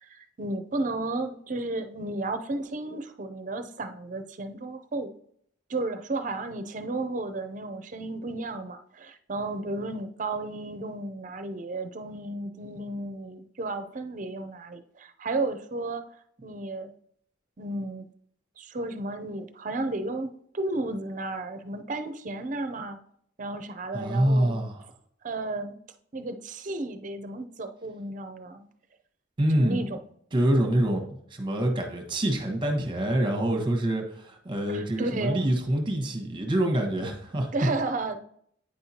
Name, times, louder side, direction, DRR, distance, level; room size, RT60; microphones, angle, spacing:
voice 1, 0.0-5.1 5.7-16.1 16.4-16.9 17.6-18.1 18.6-23.0 23.4-24.6 25.2-25.8 26.1-28.7 29.5-30.0 34.7-35.5 37.5-38.2, right 2 dB, 45° right, 9 dB, 0.6 m, -33 dB
voice 2, 23.9-24.8 29.4-29.8 30.3-31.0 31.3-37.5, right 1 dB, 25° right, 3 dB, 1.1 m, -26 dB
8.7 x 5.5 x 2.8 m, 0.66 s
head